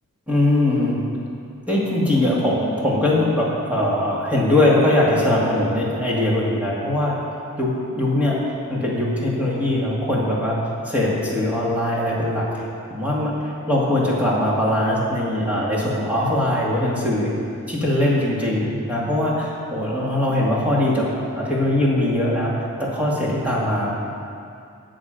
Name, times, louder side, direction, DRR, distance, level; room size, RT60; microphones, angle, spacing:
voice 1, 0.3-1.0 1.7-7.1 7.6-8.4 8.7-10.6 10.9-12.5 12.9-17.3 17.7-22.5 22.8-23.9, left 1 dB, 5° right, -6 dB, 2.1 m, -21 dB
18.0 x 6.4 x 5.2 m, 2.5 s
head